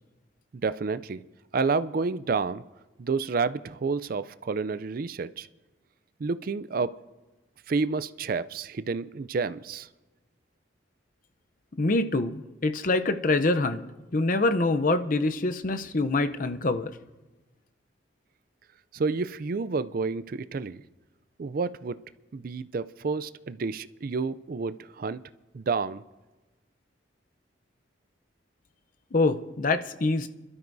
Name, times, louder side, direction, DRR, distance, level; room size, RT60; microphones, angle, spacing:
voice 1, 0.6-1.2 1.5-2.6 3.0-5.5 6.2-7.0 7.7-9.9 18.9-20.8 21.4-22.0 22.3-25.2 25.5-26.0, right 4 dB, 45° right, 15 dB, 0.4 m, -29 dB
voice 2, 11.8-13.8 14.1-16.9 29.1-30.3, left 2 dB, 45° left, 9 dB, 0.6 m, -25 dB
29.5 x 12.5 x 2.7 m, 1.2 s
head